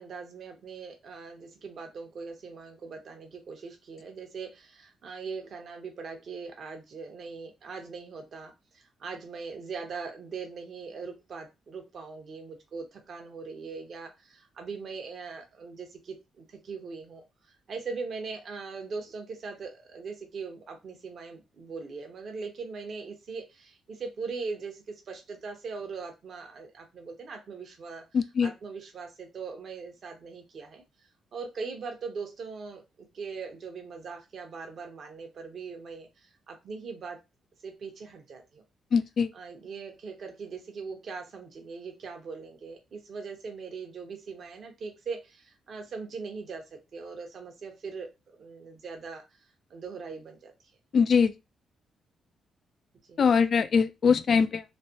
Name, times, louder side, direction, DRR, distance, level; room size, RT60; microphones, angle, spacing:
voice 1, 0.0-28.0 28.4-30.8 31.3-37.2 37.6-38.6 39.3-49.4 49.7-50.5 53.1-53.2, right 4 dB, 60° right, 0.9 m, -40 dB
voice 2, 28.1-28.5 38.9-39.3 50.9-51.3 53.2-54.6, left 6 dB, 60° left, 0.3 m, -22 dB
3.2 x 2.1 x 2.8 m
supercardioid pair, 60°, 0 cm